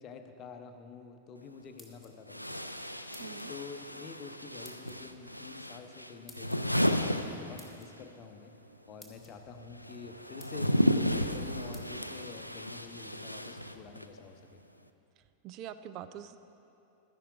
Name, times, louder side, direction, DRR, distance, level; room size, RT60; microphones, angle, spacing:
voice 1, 0.0-2.7 3.5-8.5 8.9-14.6, left 5 dB, 35° left, 7 dB, 0.8 m, -48 dB
sound 1, 1.4-1.5 2.3-8.1 8.3-14.2, equal, 90° left, 0.4 m, -33 dB
sound 2, 1.6-2.4 3.1-3.5 4.6-5.0 6.3-6.6 7.6-7.9 8.6-8.7 9.0-9.3 9.9-10.0 10.4-10.8 11.7-11.9, left 1 dB, 5° right, 1.3 m, -55 dB
voice 2, 3.2-3.5 15.4-16.4, right 10 dB, 40° right, 12 dB, 0.4 m, -44 dB
12.0 x 10.0 x 4.9 m, 2.8 s
figure-of-eight pair, 90°, 0 cm